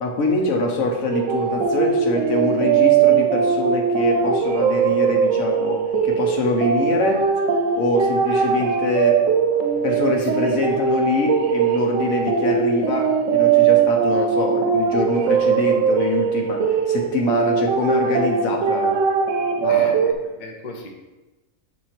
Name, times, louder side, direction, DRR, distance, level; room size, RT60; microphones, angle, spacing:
voice 1, 0.0-7.2 7.7-9.2 9.8-19.0 19.6-20.0, left 2 dB, 70° left, 1 dB, 1.5 m, -24 dB
sound 1, 1.1-20.1, right 6 dB, 70° right, 1.0 m, -20 dB
voice 2, 9.8-10.3 19.7-20.9, left 2 dB, 40° left, 1 dB, 0.8 m, -37 dB
6.4 x 4.2 x 4.4 m, 1.1 s
omnidirectional pair, 1.5 m